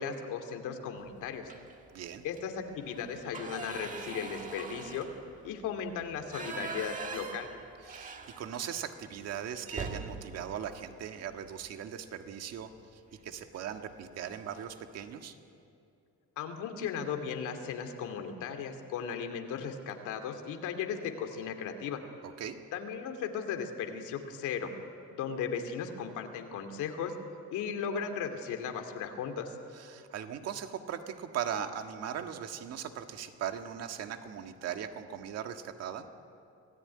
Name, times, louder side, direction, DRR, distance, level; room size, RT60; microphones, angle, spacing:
voice 1, 0.0-1.4 2.2-5.1 5.4-7.5 16.4-22.0 22.7-24.7 25.1-27.1 27.5-29.6, left 7 dB, 90° left, 5 dB, 2.6 m, -36 dB
sound 1, 1.4-1.9 2.3-2.4 2.8-8.8 9.1-9.2 9.6-11.8 13.1-13.4 13.8-13.9 14.2-14.8, right 4 dB, 25° right, 1.5 m, -43 dB
voice 2, 1.9-2.2 7.8-15.3 22.2-22.6 29.7-36.1, right 8 dB, 55° right, 6 dB, 1.6 m, -39 dB
26.0 x 17.5 x 9.6 m, 2.6 s
cardioid pair, 170°, 30 cm